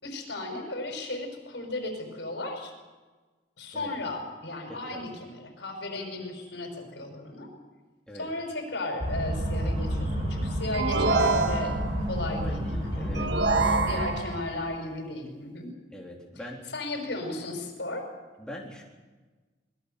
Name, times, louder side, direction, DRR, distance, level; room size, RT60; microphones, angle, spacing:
voice 1, 0.0-2.7 3.6-7.5 8.2-13.3 13.9-15.7 16.7-18.1, left 2 dB, 70° left, 4 dB, 5.5 m, -35 dB
voice 2, 4.7-5.0 8.1-8.3 12.3-13.3 13.6-14.1 15.9-16.6 18.4-18.8, left 1 dB, 5° left, -2 dB, 3.6 m, -41 dB
sound 1, 9.0-14.2, equal, 30° right, 7.2 m, -30 dB
sound 2, 10.7-12.1 13.1-14.5, right 3 dB, 70° right, 1.6 m, -26 dB
26.0 x 21.0 x 6.8 m, 1.3 s
head